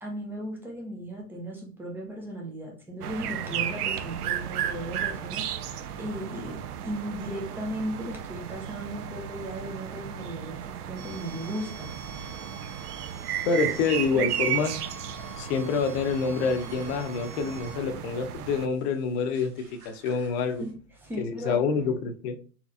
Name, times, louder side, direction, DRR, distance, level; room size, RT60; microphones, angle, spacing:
voice 1, 0.0-5.7 6.0-11.9 20.6-21.6, right 1 dB, 5° right, 0.4 m, -36 dB
sound 1, 3.0-18.7, right 10 dB, 70° right, 0.6 m, -34 dB
sound 2, 11.0-20.7, right 2 dB, 35° right, 1.7 m, -48 dB
voice 2, 13.5-14.8 15.4-20.6 21.2-22.4, left 5 dB, 40° left, 0.7 m, -27 dB
4.2 x 3.0 x 2.4 m
hypercardioid pair, 110°, 48 cm